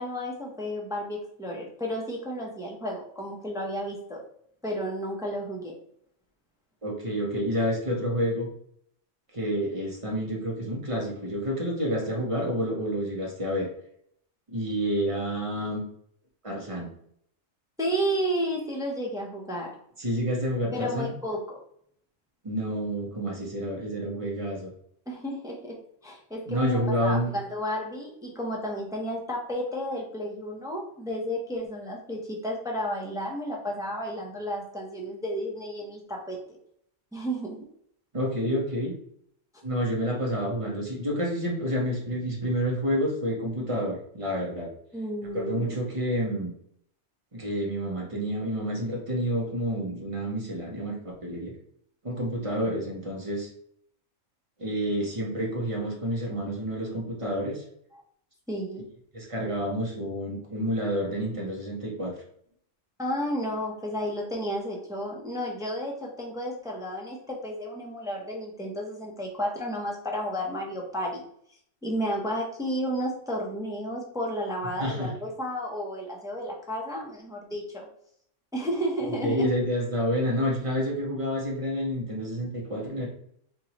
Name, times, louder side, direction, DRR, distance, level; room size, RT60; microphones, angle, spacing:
voice 1, 0.0-4.2 4.6-5.7 17.8-19.7 20.7-21.6 25.1-25.8 26.0-36.4 37.1-37.6 44.9-45.7 58.5-58.9 63.0-71.2 71.8-77.9 78.5-79.5, equal, 5° right, -1 dB, 0.5 m, -32 dB
voice 2, 6.8-8.5 9.3-13.7 14.5-15.8 16.4-16.9 20.0-21.1 22.4-24.7 26.5-27.3 38.1-38.9 39.6-44.7 45.3-46.5 47.3-51.6 52.0-53.5 54.6-57.6 59.1-62.2 74.8-75.1 79.2-83.1, equal, 30° right, -2 dB, 1.0 m, -29 dB
4.6 x 2.6 x 2.9 m, 0.68 s
omnidirectional pair, 1.3 m